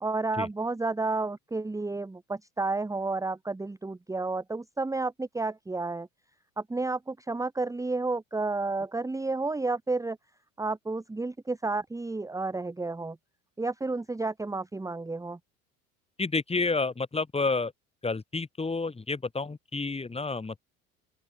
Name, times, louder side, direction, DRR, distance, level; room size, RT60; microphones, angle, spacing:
voice 1, 0.0-6.1 6.6-10.2 10.6-13.2 13.6-15.4, right 3 dB, 10° right, 1.2 m, -31 dB
voice 2, 16.2-17.7 18.0-20.6, left 3 dB, 15° left, 2.2 m, -30 dB
open air
hypercardioid pair, 75°, 41 cm